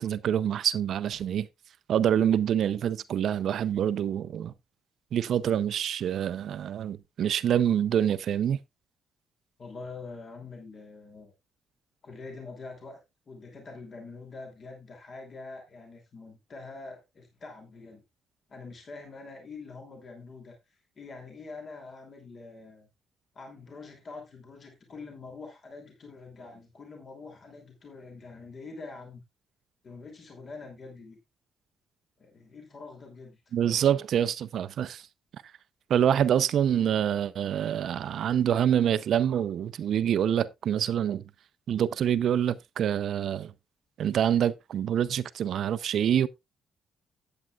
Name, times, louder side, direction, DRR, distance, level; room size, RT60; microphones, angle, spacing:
voice 1, 0.0-1.5 1.9-4.5 5.1-8.6 33.5-35.0 35.9-41.2 41.7-43.5 44.0-46.3, right 9 dB, 65° right, 0.6 m, -26 dB
voice 2, 9.6-11.3 12.0-13.0 13.3-18.0 18.5-20.6 21.0-22.9 23.3-29.2 29.8-31.2 32.2-33.6, left 3 dB, 45° left, 2.8 m, -45 dB
13.5 x 8.7 x 2.4 m
cardioid pair, 90°, 0 cm